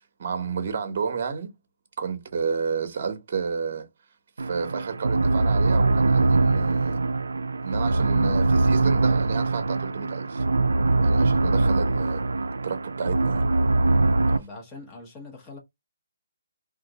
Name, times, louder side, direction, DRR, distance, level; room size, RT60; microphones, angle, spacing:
voice 1, 0.2-1.5 2.0-3.9 4.4-7.0 7.6-10.4 11.0-12.2 12.6-13.4, right 5 dB, 45° right, 0.9 m, -31 dB
sound 1, 4.4-14.4, right 2 dB, 85° right, 0.3 m, -22 dB
voice 2, 14.2-15.6, left 2 dB, 20° left, 0.9 m, -42 dB
2.5 x 2.4 x 4.0 m
hypercardioid pair, 155°, 0 cm